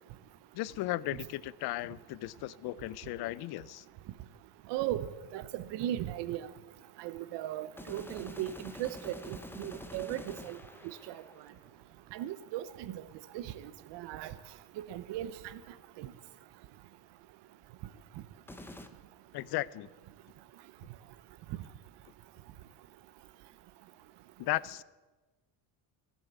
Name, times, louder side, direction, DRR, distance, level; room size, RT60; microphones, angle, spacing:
voice 1, 0.5-3.8 19.3-19.9 24.4-24.8, left 17 dB, 55° left, 21 dB, 0.5 m, -36 dB
voice 2, 4.7-5.1 5.3-6.5 7.0-10.6 12.1-13.0 13.3-13.5 13.9-14.3 14.8-15.3 16.0-16.1, right 13 dB, 65° right, 14 dB, 0.8 m, -37 dB
sound 1, 7.8-11.8 18.5-18.9, left 2 dB, 5° left, 0.6 m, -47 dB
16.0 x 7.3 x 8.2 m, 1.2 s
cardioid pair, 160°, 46 cm